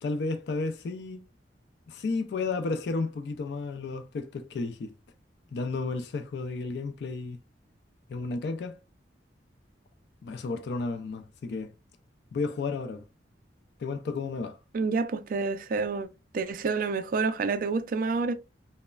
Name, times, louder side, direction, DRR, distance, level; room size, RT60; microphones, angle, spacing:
voice 1, 0.0-1.2 1.9-4.9 5.5-7.4 8.1-8.8 10.2-11.7 12.3-13.0 13.8-14.6, left 3 dB, 70° left, 0.3 m, -32 dB
voice 2, 14.7-16.1 16.3-18.3, right 4 dB, 50° right, 0.3 m, -28 dB
3.0 x 2.1 x 2.2 m
head